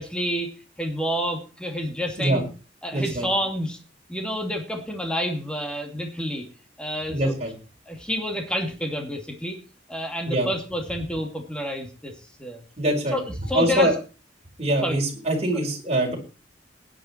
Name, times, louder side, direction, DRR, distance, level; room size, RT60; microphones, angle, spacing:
voice 1, 0.0-2.5 2.8-3.8 4.1-6.4 6.8-7.3 7.9-9.6 9.9-12.6 13.1-13.2 13.5-13.9 14.8-15.0 15.5-15.6, equal, 5° left, 3 dB, 2.6 m, -29 dB
voice 2, 2.9-3.3 7.1-7.5 10.3-10.5 12.8-13.2 13.5-13.9 14.6-16.2, right 1 dB, 35° right, 0 dB, 5.0 m, -23 dB
16.5 x 10.5 x 4.5 m, 0.35 s
head